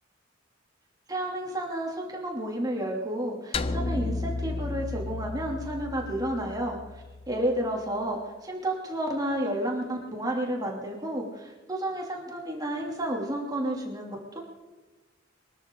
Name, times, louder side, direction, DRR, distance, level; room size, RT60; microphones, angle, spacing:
voice 1, 1.1-14.4, right 1 dB, 20° right, 0 dB, 2.8 m, -31 dB
sound 1, 3.5-7.9, left 3 dB, 30° left, 0.6 m, -33 dB
23.5 x 13.0 x 3.9 m, 1.2 s
head